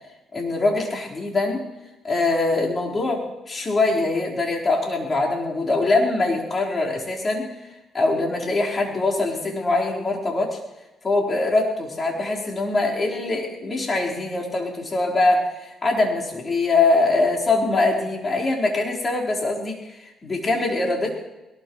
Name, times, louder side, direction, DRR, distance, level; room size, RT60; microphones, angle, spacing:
voice 1, 0.3-1.6 2.0-7.5 7.9-10.6 11.0-21.1, left 2 dB, 35° left, -3 dB, 4.4 m, -23 dB
21.5 x 19.5 x 3.2 m, 1.0 s
cardioid pair, 90°, 0 cm